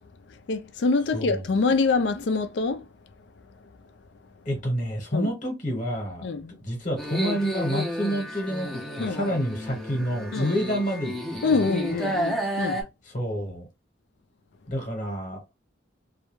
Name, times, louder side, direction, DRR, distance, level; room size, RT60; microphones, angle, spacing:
voice 1, 0.5-2.8 5.1-5.3 6.2-6.6 9.0-9.2 10.3-10.5 11.4-12.8, left 4 dB, 65° left, 0.4 m, -25 dB
voice 2, 4.4-6.3 6.6-11.7 11.9-12.2 13.0-13.7 14.7-15.4, equal, 45° left, 1.0 m, -29 dB
sound 1, 7.0-12.8, equal, ahead, 0.6 m, -31 dB
2.3 x 2.1 x 3.0 m
head